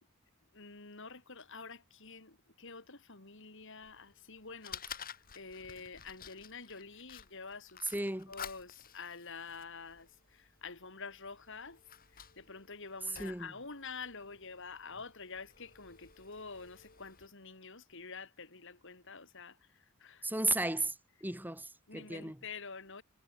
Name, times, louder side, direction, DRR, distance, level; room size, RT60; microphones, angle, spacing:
voice 1, 0.5-4.8 5.4-11.8 12.1-20.3 21.9-23.0, left 4 dB, 60° left, 4.0 m, -48 dB
Fire, 3.8-17.3, left 8 dB, 45° left, 6.1 m, -52 dB
voice 2, 7.9-8.3 13.2-13.5 20.2-20.9 21.2-22.4, right 2 dB, 10° right, 3.0 m, -34 dB
head